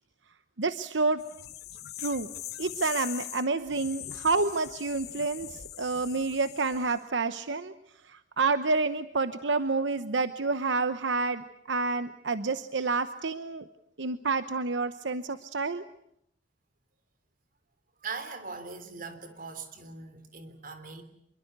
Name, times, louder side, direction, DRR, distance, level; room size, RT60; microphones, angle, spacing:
voice 1, 0.6-1.2 2.0-2.3 2.6-7.7 8.1-13.7 14.0-15.8, right 3 dB, 80° right, 11 dB, 1.0 m, -29 dB
sound 1, 1.2-7.0, left 12 dB, 60° left, 1.2 m, -41 dB
voice 2, 18.0-21.0, right 4 dB, 50° right, 10 dB, 3.4 m, -40 dB
26.5 x 22.5 x 8.1 m, 0.75 s
head